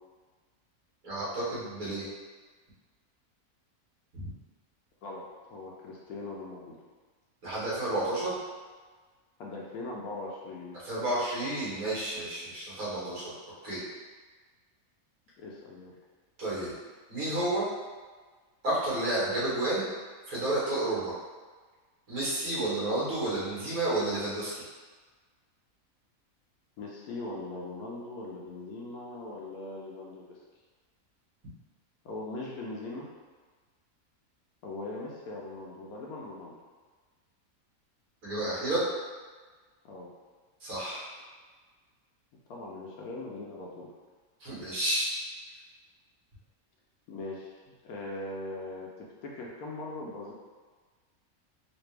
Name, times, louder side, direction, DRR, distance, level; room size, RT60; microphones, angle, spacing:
voice 1, 1.0-2.1 7.4-8.3 10.8-13.3 13.6-13.8 16.4-16.7 17.1-17.7 18.6-19.9 20.3-21.1 22.1-24.6 38.2-38.8 40.6-41.0 44.4-45.1, right 1 dB, 70° right, -9 dB, 2.1 m, -30 dB
voice 2, 5.0-6.8 9.4-10.8 12.9-13.2 15.4-15.9 26.8-30.2 32.0-33.1 34.6-36.5 39.8-40.1 42.5-43.9 47.1-48.9 49.2-50.3, left 2 dB, 80° left, -3 dB, 1.1 m, -40 dB
4.1 x 2.5 x 3.3 m, 1.4 s
omnidirectional pair, 1.5 m